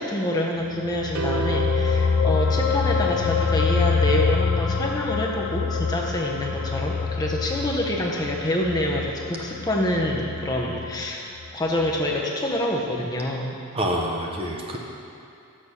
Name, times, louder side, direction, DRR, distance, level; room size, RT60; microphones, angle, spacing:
voice 1, 0.0-11.2 11.5-13.6, left 1 dB, 20° left, -1 dB, 0.6 m, -26 dB
sound 1, 0.7-11.5 11.8-12.0, left 5 dB, 65° left, 0.5 m, -25 dB
sound 2, 1.1-3.5, right 5 dB, 75° right, 0.6 m, -32 dB
voice 2, 13.7-14.8, equal, 25° right, -1 dB, 0.7 m, -26 dB
6.5 x 6.4 x 5.6 m, 2.6 s
head